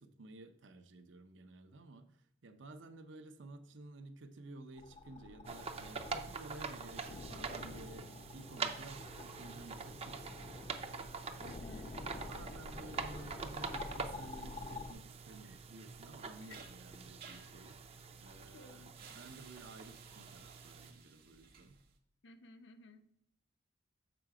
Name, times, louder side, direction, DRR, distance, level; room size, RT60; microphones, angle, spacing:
voice 1, 0.0-11.8 12.3-21.8, right 2 dB, 75° right, 9 dB, 0.7 m, -54 dB
sound 1, 4.8-14.9, left 2 dB, 35° left, 0.5 m, -49 dB
sound 2, 5.4-20.9, right 4 dB, 35° right, 0.5 m, -45 dB
voice 2, 11.4-11.9 16.4-16.6 18.5-18.9 22.2-23.0, left 2 dB, 65° left, 8 dB, 0.8 m, -56 dB
sound 3, 15.8-22.0, right 6 dB, 55° right, 1.0 m, -58 dB
6.8 x 4.8 x 4.8 m, 0.69 s
head